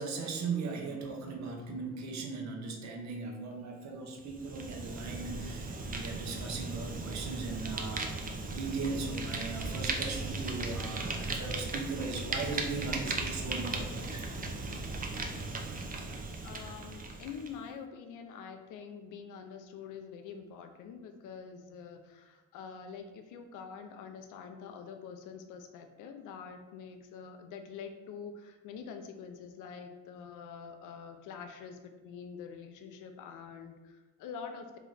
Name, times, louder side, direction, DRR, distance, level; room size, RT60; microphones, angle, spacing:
voice 1, 0.0-8.1 8.5-14.2, right 4 dB, 65° right, 1 dB, 0.8 m, -38 dB
Fire, 4.2-17.5, right 3 dB, 30° right, 0.6 m, -37 dB
voice 2, 16.4-34.8, left 6 dB, 90° left, 6 dB, 0.6 m, -46 dB
3.2 x 3.0 x 3.9 m, 1.2 s
cardioid pair, 90°, 30 cm